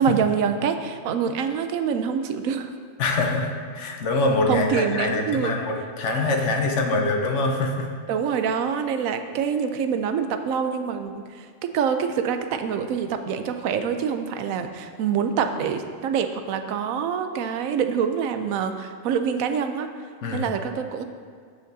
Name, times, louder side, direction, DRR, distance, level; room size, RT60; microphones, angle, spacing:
voice 1, 0.0-2.7 4.5-5.5 8.1-11.5 11.7-19.9 20.3-21.0, right 7 dB, 85° right, 8 dB, 1.0 m, -25 dB
voice 2, 3.0-7.9 20.2-20.5, left 2 dB, 65° left, 2 dB, 1.2 m, -24 dB
14.5 x 5.1 x 2.6 m, 2.1 s
omnidirectional pair, 1.4 m